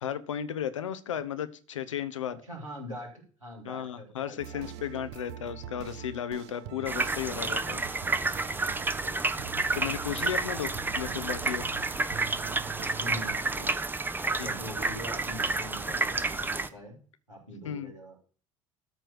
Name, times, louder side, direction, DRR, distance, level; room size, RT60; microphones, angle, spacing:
voice 1, 0.0-2.4 3.6-7.8 9.7-11.7 14.4-14.5 17.6-17.9, left 9 dB, 75° left, 13 dB, 0.9 m, -34 dB
voice 2, 2.4-5.0 9.8-9.9 13.0-13.8 14.2-17.0 17.3-18.2, equal, 90° right, -3 dB, 3.9 m, -43 dB
sound 1, 4.4-13.4, right 10 dB, 55° right, 0.7 m, -44 dB
sound 2, 6.9-16.7, right 3 dB, 10° right, 0.8 m, -30 dB
13.0 x 4.5 x 6.4 m, 0.41 s
figure-of-eight pair, 65°, 16 cm